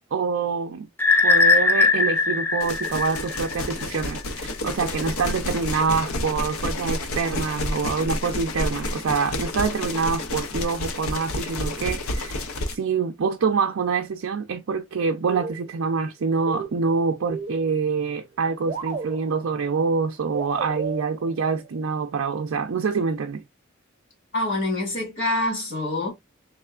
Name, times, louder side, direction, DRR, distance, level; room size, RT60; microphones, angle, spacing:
voice 1, 0.1-0.9 1.2-23.4, right 5 dB, 65° right, 0.4 m, -26 dB
sound 1, 1.0-3.8, left 3 dB, 10° left, 0.5 m, -20 dB
sound 2, 2.6-12.8, left 2 dB, 80° left, 0.6 m, -30 dB
sound 3, 15.3-16.0 16.3-18.0 18.3-18.4 18.7-19.8 20.3-21.8, right 5 dB, 35° right, 0.7 m, -34 dB
voice 2, 24.3-26.1, left 2 dB, 60° left, 2.0 m, -25 dB
3.6 x 3.3 x 2.3 m
head